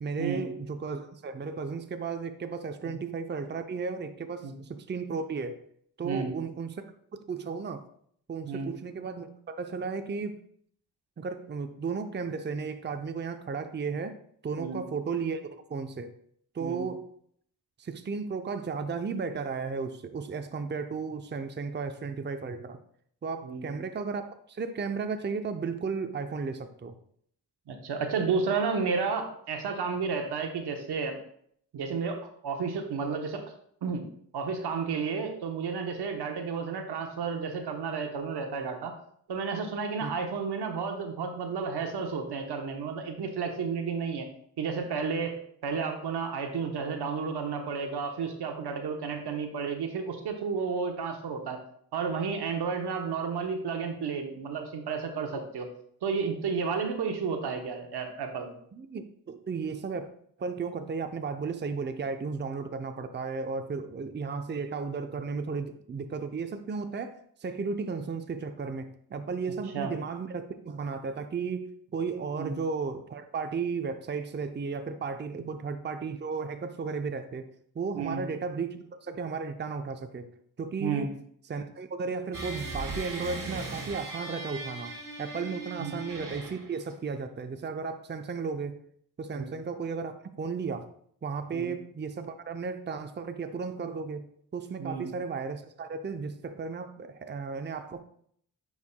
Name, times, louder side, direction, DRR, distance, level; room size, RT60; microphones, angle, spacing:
voice 1, 0.0-5.6 6.0-6.9 7.1-7.8 8.3-10.4 11.2-14.2 14.4-16.1 16.5-17.1 17.8-22.8 23.2-26.9 40.0-40.1 58.7-60.1 60.4-77.5 77.7-80.3 80.6-81.1 81.5-88.8 89.2-90.9 91.2-94.3 94.5-98.0, right 5 dB, 30° right, 8 dB, 0.6 m, -34 dB
voice 2, 27.7-31.2 31.7-33.4 33.8-34.0 34.3-38.9 39.3-44.3 44.6-45.4 45.6-51.6 51.9-55.7 56.0-58.6 69.7-69.9 72.4-72.5 75.5-75.6 77.9-78.2 80.8-81.1 85.8-85.9 89.3-89.5 91.5-91.7 94.8-95.1, right 5 dB, 80° right, 5 dB, 1.0 m, -32 dB
sound 1, 82.3-86.8, right 2 dB, 55° right, 1.8 m, -38 dB
9.4 x 4.7 x 2.2 m, 0.65 s
cardioid pair, 55°, 39 cm